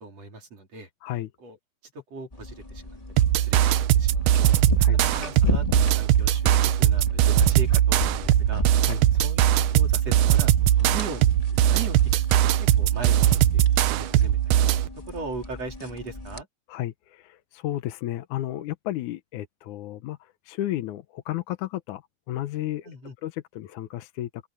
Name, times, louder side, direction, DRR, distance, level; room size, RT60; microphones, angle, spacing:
voice 1, 0.0-0.9 1.4-1.6 1.9-3.0 3.4-4.5 4.9-9.4 9.7-14.7 14.9-16.5 22.8-23.1, right 3 dB, 45° right, 5.1 m, -39 dB
sound 1, 2.3-16.4, left 2 dB, 15° left, 1.3 m, -35 dB
sound 2, 3.2-14.9, right 12 dB, 75° right, 2.3 m, -20 dB
voice 2, 16.7-22.0 22.3-22.9 23.2-24.5, left 14 dB, 70° left, 2.1 m, -33 dB
open air
omnidirectional pair, 3.9 m